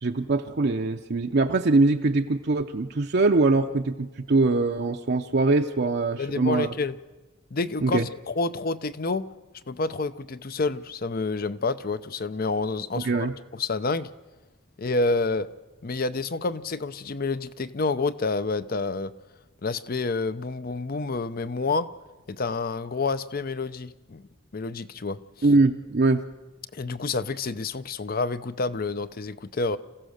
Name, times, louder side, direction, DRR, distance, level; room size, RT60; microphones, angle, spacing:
voice 1, 0.0-6.7 7.8-8.1 13.0-13.3 25.4-26.2, right 3 dB, 50° right, 4 dB, 0.6 m, -22 dB
voice 2, 6.2-7.0 7.5-8.0 8.3-9.3 9.7-13.3 13.6-14.1 14.8-15.5 15.8-19.1 19.6-21.9 22.3-24.3 24.5-25.2 26.7-29.8, left 3 dB, 45° left, 14 dB, 0.6 m, -28 dB
27.5 x 15.5 x 6.5 m, 1.2 s
head